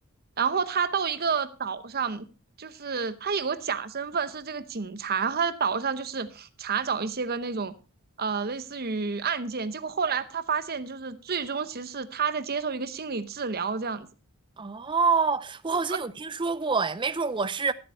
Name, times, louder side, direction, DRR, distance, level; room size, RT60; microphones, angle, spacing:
voice 1, 0.4-2.3 2.6-7.7 8.2-14.1 15.9-16.0, right 5 dB, 45° right, 0.9 m, -29 dB
voice 2, 14.6-17.7, right 4 dB, 20° right, 0.6 m, -26 dB
13.5 x 7.8 x 4.5 m
head